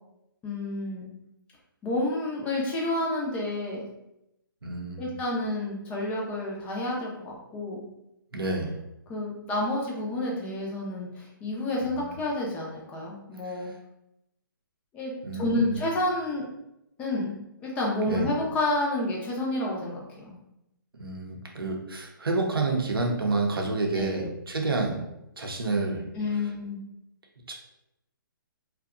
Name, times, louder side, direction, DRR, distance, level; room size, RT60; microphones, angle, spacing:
voice 1, 0.4-1.1 1.8-3.9 5.0-7.9 9.1-13.7 14.9-16.4 17.0-20.4 23.9-24.3 26.1-26.8, left 2 dB, 10° left, -3 dB, 0.3 m, -30 dB
voice 2, 4.6-5.1 8.3-8.8 11.8-12.1 13.4-13.7 15.2-15.9 18.1-18.3 21.0-25.1 25.4-26.0 27.5-27.6, right 3 dB, 85° right, 1 dB, 0.6 m, -29 dB
2.6 x 2.1 x 2.3 m, 0.86 s
figure-of-eight pair, 135°, 12 cm